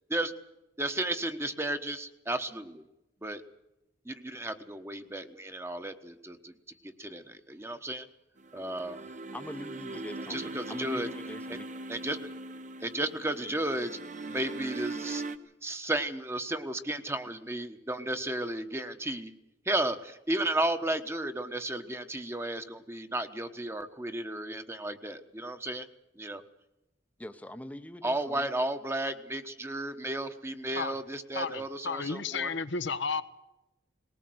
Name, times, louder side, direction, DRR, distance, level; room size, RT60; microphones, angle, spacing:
voice 1, 0.8-2.9 3.2-3.4 4.0-6.5 7.0-8.1 8.5-9.1 10.3-11.1 11.5-11.6 11.9-12.3 12.8-14.0 14.3-15.2 15.6-19.3 19.6-25.9 26.2-26.4 28.0-32.5, right 1 dB, 15° right, 1.3 m, -33 dB
sound 1, 8.4-15.4, right 3 dB, 45° right, 1.1 m, -40 dB
voice 2, 9.3-11.7 27.2-28.5, left 1 dB, 10° left, 0.9 m, -43 dB
voice 3, 31.3-33.2, left 5 dB, 80° left, 1.2 m, -32 dB
20.0 x 18.5 x 7.9 m
head